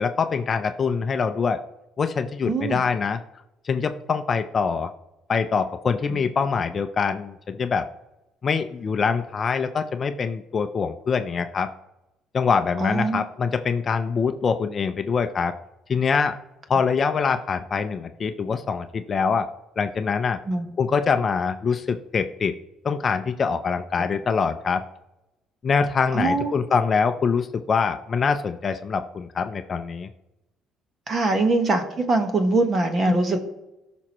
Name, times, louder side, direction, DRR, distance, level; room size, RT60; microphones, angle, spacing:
voice 1, 0.0-1.6 2.0-3.2 3.6-4.9 5.3-7.9 8.4-11.7 12.3-15.5 15.9-16.3 16.7-19.5 19.8-20.4 20.8-22.5 22.8-24.8 25.6-30.1 33.1-33.2, left 5 dB, 30° left, 8 dB, 0.5 m, -24 dB
voice 2, 2.4-2.8 12.8-13.2 20.5-20.7 26.1-26.5 31.1-33.4, right 2 dB, 30° right, 6 dB, 1.3 m, -22 dB
17.5 x 6.0 x 3.0 m, 0.93 s
cardioid pair, 145°, 0 cm